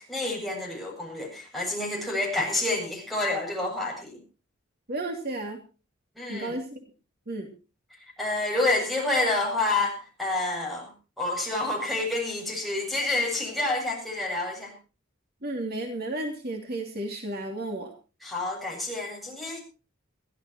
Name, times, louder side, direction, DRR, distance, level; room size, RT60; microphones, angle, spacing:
voice 1, 0.0-4.2 6.2-6.5 8.2-10.9 11.2-14.7 18.2-19.6, left 2 dB, ahead, -1 dB, 7.8 m, -28 dB
voice 2, 4.9-5.6 6.3-6.8 7.3-7.5 15.4-17.9, right 1 dB, 50° right, 3 dB, 2.9 m, -33 dB
22.5 x 15.0 x 3.1 m, 0.33 s
head